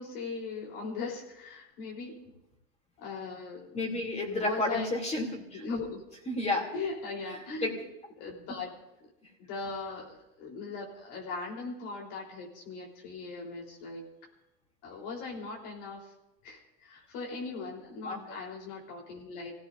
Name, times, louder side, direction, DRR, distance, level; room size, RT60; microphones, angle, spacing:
voice 1, 0.0-2.3 3.0-3.8 4.4-4.9 5.5-6.0 6.7-7.8 8.2-9.1 9.4-14.1 14.8-16.1 16.4-19.5, left 4 dB, 70° left, -1 dB, 4.0 m, -39 dB
voice 2, 3.7-5.6 6.3-6.7 7.3-7.8 18.0-18.4, left 2 dB, 20° left, 2 dB, 3.2 m, -32 dB
26.5 x 16.5 x 2.7 m, 0.92 s
supercardioid pair, 110°, 32 cm